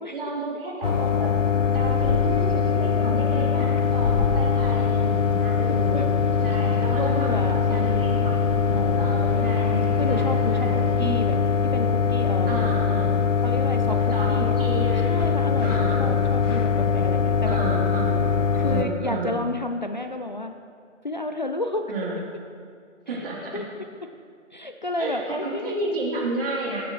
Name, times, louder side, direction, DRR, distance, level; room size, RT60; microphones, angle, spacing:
voice 1, 0.1-1.3 1.7-6.1 6.4-8.4 9.0-11.5 12.5-13.2 13.9-15.1 15.6-16.6 16.9-17.0 17.4-18.2 18.6-19.4 21.9-22.2 23.1-23.6 25.0-26.8, right 2 dB, 45° right, -4 dB, 3.1 m, -32 dB
sound 1, 0.8-18.8, left 6 dB, 75° left, 1.0 m, -22 dB
voice 2, 1.5-2.2 3.0-4.0 5.7-6.1 6.5-6.6 6.9-8.2 8.7-9.5 10.0-10.7 11.0-11.4 11.7-12.8 13.4-14.7 15.0-17.6 18.6-20.5 21.0-21.9 23.1-23.3 23.5-23.9 24.5-25.7, left 2 dB, 40° left, 6 dB, 0.4 m, -32 dB
sound 2, 3.8-11.4, right 1 dB, 30° right, 0.5 m, -41 dB
14.5 x 10.0 x 3.1 m, 2.3 s
hypercardioid pair, 165°, 38 cm